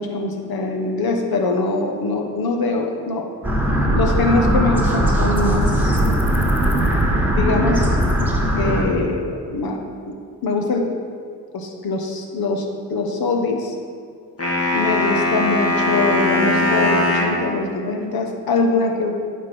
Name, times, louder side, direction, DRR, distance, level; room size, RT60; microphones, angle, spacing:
voice 1, 0.0-3.2 3.9-6.0 7.4-8.0 8.6-9.8 10.1-10.2 10.4-10.8 11.5-13.8 14.7-19.1, left 3 dB, 60° left, 3 dB, 1.2 m, -22 dB
sound 1, 3.4-8.8, right 1 dB, 5° right, 1.5 m, -19 dB
sound 2, 14.4-17.4, left 2 dB, 35° left, 1.8 m, -20 dB
9.2 x 3.7 x 6.0 m, 2.2 s
hypercardioid pair, 45°, 42 cm